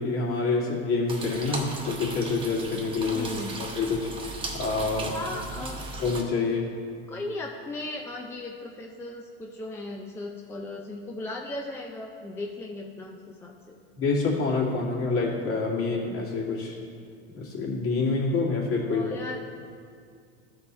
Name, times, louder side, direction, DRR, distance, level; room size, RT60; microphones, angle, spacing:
voice 1, 0.0-3.3 3.6-5.1 6.0-6.7 14.0-16.8 17.3-19.0, left 3 dB, 45° left, -3 dB, 2.3 m, -27 dB
sound 1, 1.1-6.2, right 2 dB, 15° right, 1.1 m, -37 dB
voice 2, 3.1-3.6 5.1-5.8 7.1-13.8 18.8-19.4, left 2 dB, 10° left, 1 dB, 0.4 m, -37 dB
13.5 x 4.5 x 4.2 m, 2.2 s
supercardioid pair, 115°, 32 cm